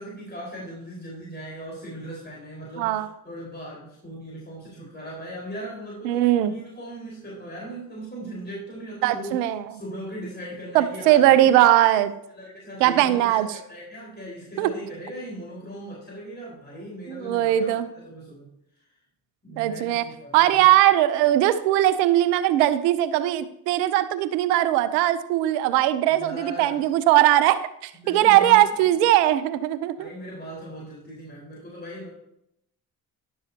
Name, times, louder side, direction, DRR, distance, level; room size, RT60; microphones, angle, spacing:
voice 1, 0.0-9.4 9.7-11.5 12.3-18.5 18.8-18.9 19.4-20.7 26.1-26.8 27.9-28.9 30.0-32.1, right 1 dB, 20° left, -4 dB, 4.8 m, -38 dB
voice 2, 6.0-6.5 9.0-9.6 10.7-12.1 12.8-13.5 14.6-14.7 17.1-17.9 19.6-20.0 20.3-30.1, right 13 dB, 75° right, 14 dB, 0.8 m, -20 dB
12.5 x 11.0 x 2.9 m, 0.77 s
hypercardioid pair, 50°, 48 cm